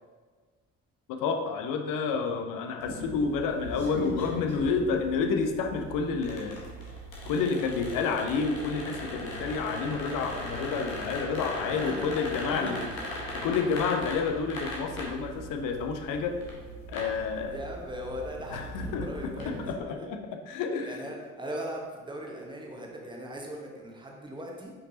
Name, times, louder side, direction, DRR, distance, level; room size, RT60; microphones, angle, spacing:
voice 1, 1.1-6.6 7.3-12.9 13.3-16.4 16.9-17.6 18.5-20.2 20.5-21.0, left 5 dB, 50° left, 5 dB, 0.7 m, -29 dB
sound 1, 2.8-19.7, left 1 dB, 80° left, 1.1 m, -39 dB
voice 2, 9.1-9.4 11.6-12.0 12.3-12.7 15.3-15.4 17.5-20.1 20.8-24.7, equal, 10° right, 0 dB, 1.2 m, -40 dB
6.7 x 5.3 x 2.8 m, 1.5 s
figure-of-eight pair, 45°, 40 cm